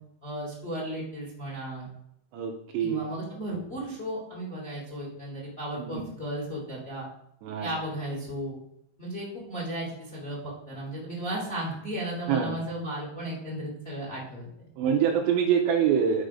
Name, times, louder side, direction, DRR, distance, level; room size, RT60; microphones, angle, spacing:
voice 1, 0.2-1.9 2.8-7.0 7.6-8.6 9.0-14.7, right 1 dB, 15° left, -4 dB, 2.5 m, -35 dB
voice 2, 2.3-3.0 5.8-6.0 7.4-7.7 12.3-12.6 14.8-16.2, right 8 dB, 80° right, 2 dB, 2.9 m, -25 dB
11.5 x 5.5 x 5.1 m, 0.75 s
omnidirectional pair, 5.7 m